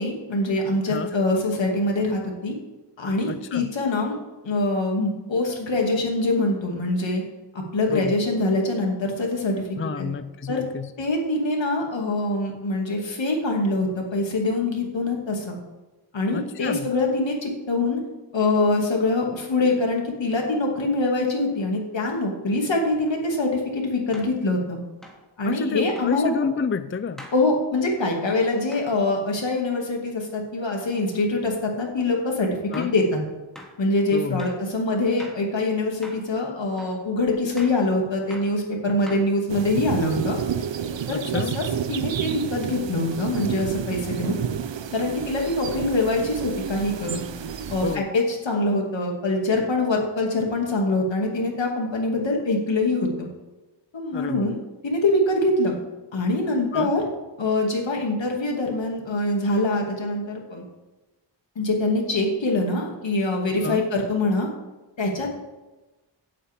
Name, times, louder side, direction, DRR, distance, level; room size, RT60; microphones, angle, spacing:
voice 1, 0.0-2.6 3.0-4.2 4.4-7.2 7.7-9.7 10.0-10.1 10.5-10.6 11.0-15.5 16.1-18.0 18.3-24.8 25.4-26.5 27.3-32.5 32.8-33.2 33.8-40.4 41.1-44.4 44.9-47.2 47.7-53.3 53.9-54.6 54.8-55.7 56.1-57.0 57.4-60.6 61.6-64.5 65.0-65.3, left 2 dB, 70° left, 0 dB, 2.7 m, -24 dB
voice 2, 3.3-3.7 7.9-8.2 9.8-10.9 16.3-16.9 25.5-27.3 32.7-32.9 34.1-34.5 41.1-41.6 47.8-48.0 54.1-54.6 56.7-56.9 63.6-63.8, left 5 dB, 30° left, 12 dB, 0.5 m, -30 dB
sound 1, 23.1-23.2 24.1-24.4 25.0-25.3 26.0-26.2 27.2-27.4 28.7-28.9 32.0-32.1 32.7-33.0 33.6-33.8 34.4-34.6 35.2-35.5 36.0-36.3 36.8-37.0 37.6-37.8 38.3-38.6 39.1-39.6, equal, ahead, 2.7 m, -43 dB
sound 2, 39.5-48.0, right 8 dB, 70° right, 0.8 m, -30 dB
16.5 x 8.6 x 3.7 m, 1.1 s
wide cardioid pair, 75°, 46 cm